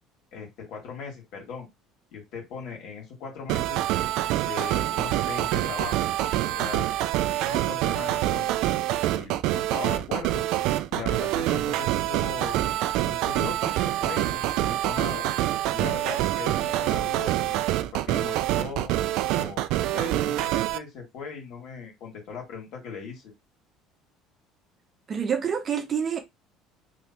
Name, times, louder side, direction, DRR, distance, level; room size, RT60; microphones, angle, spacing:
voice 1, 0.3-1.7 2.1-3.8 4.4-5.9 6.6-6.9 7.4-8.5 9.2-10.4 10.9-12.6 13.0-15.3 15.7-18.9 19.3-23.3, left 5 dB, 60° left, 2.2 m, -39 dB
sound 1, 3.5-20.8, right 14 dB, 70° right, 0.3 m, -26 dB
voice 2, 25.1-26.2, right 7 dB, 35° right, 0.8 m, -27 dB
3.3 x 3.1 x 2.9 m
cardioid pair, 125°, 0 cm